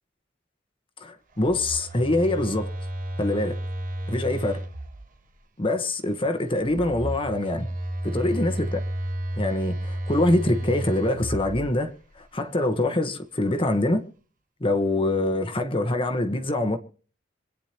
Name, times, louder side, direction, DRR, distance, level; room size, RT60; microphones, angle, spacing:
voice 1, 1.0-2.7 3.2-3.6 4.1-4.6 5.6-7.7 8.0-8.8 9.4-14.0 14.6-16.8, left 1 dB, 30° left, 1.2 m, -24 dB
Telephone, 1.3-5.4 6.5-12.2, right 1 dB, 50° right, 1.2 m, -32 dB
27.0 x 9.4 x 3.0 m
head